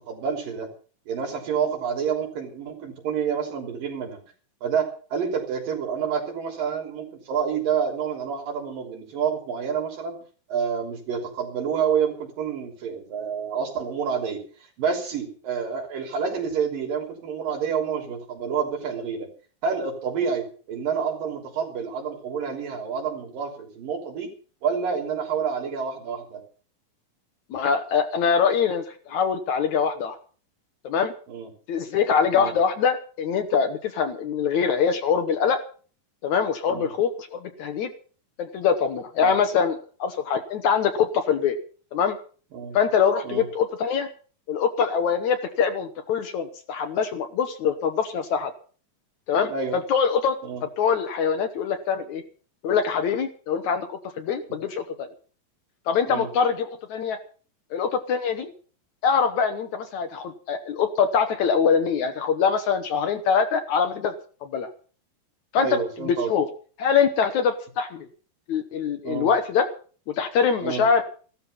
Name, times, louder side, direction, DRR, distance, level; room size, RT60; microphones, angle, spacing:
voice 1, 0.1-0.7 1.1-4.2 4.6-10.2 10.5-14.4 14.8-19.3 19.6-24.3 24.6-26.4 31.3-31.5 32.3-32.6 36.7-36.9 39.2-39.4 42.5-42.8 43.2-43.5 49.5-49.8 50.4-50.6 56.1-56.3 65.6-66.4 69.0-69.3 70.6-70.8, right 6 dB, 70° right, 2 dB, 5.1 m, -28 dB
voice 2, 27.5-30.2 30.8-31.1 31.7-35.6 36.2-37.9 38.4-41.6 41.9-42.2 42.7-44.1 44.5-48.5 49.3-50.4 50.8-52.2 52.6-55.1 55.9-57.2 57.7-58.5 59.0-64.1 64.4-64.7 65.5-65.8 66.0-66.5 66.8-68.1 68.5-69.7 70.1-71.0, left 6 dB, 65° left, 7 dB, 2.3 m, -23 dB
15.5 x 13.0 x 5.7 m, 0.41 s
omnidirectional pair, 4.1 m